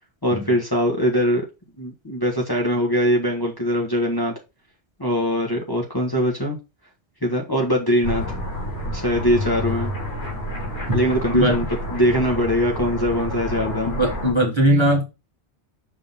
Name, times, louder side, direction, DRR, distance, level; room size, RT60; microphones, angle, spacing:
voice 1, 0.2-1.4 1.8-4.3 5.0-6.6 7.2-8.4 8.9-9.9 10.9-14.0, equal, 20° left, 1.4 m, -22 dB
sound 1, 8.0-14.3, left 1 dB, 75° left, 3.2 m, -29 dB
voice 2, 13.9-15.0, equal, 25° right, 1.7 m, -19 dB
6.1 x 3.7 x 5.5 m
omnidirectional pair, 1.2 m